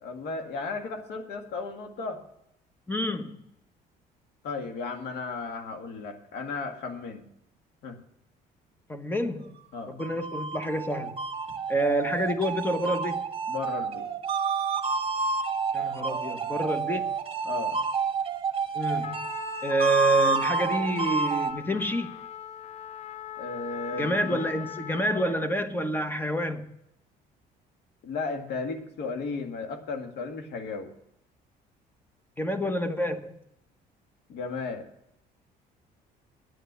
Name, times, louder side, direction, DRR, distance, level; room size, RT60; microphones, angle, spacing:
voice 1, 0.0-2.2 4.4-7.3 7.8-8.0 9.7-10.0 13.5-14.1 17.4-17.8 23.4-24.4 28.0-30.9 34.3-34.9, left 4 dB, 75° left, 2.0 m, -35 dB
voice 2, 2.9-3.4 8.9-9.5 9.9-11.2 11.7-13.3 15.7-17.1 18.7-19.2 19.6-22.1 23.9-26.6 32.4-33.4, right 1 dB, 10° left, 1.1 m, -28 dB
sound 1, 9.7-21.5, right 4 dB, 35° right, 1.4 m, -29 dB
Trumpet, 19.0-25.6, left 10 dB, 40° left, 0.5 m, -40 dB
10.0 x 8.3 x 6.8 m
cardioid pair, 110°, 17 cm